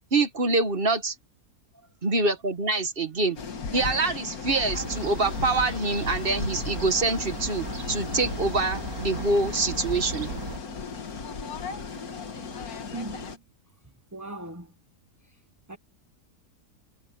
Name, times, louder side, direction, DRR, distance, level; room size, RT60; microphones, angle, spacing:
voice 1, 0.1-1.1 2.0-3.4 3.7-10.3, right 3 dB, 35° right, 1.5 m, -25 dB
sound 1, 3.4-13.4, left 5 dB, 65° left, 2.1 m, -36 dB
Fowl / Gull seagull, 4.7-10.6, right 3 dB, 60° right, 2.7 m, -36 dB
voice 2, 12.9-13.4 14.1-14.7 15.2-15.4 15.7-15.8, right 2 dB, 10° right, 1.2 m, -39 dB
omnidirectional pair, 1.7 m